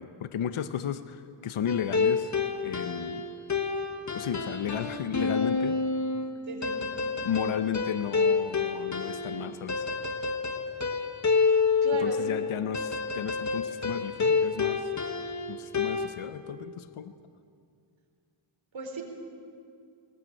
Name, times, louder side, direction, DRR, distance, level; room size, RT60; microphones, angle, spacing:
voice 1, 0.0-2.3 2.6-3.3 4.1-5.8 7.2-9.9 12.0-14.9 15.5-17.1, left 8 dB, 75° left, 11 dB, 0.9 m, -34 dB
sound 1, 1.7-16.1, left 4 dB, 35° left, 1.5 m, -28 dB
voice 2, 6.5-6.8 11.8-12.2 18.7-19.0, right 4 dB, 60° right, 1 dB, 4.3 m, -36 dB
19.5 x 19.0 x 8.9 m, 2.4 s
cardioid pair, 80°, 50 cm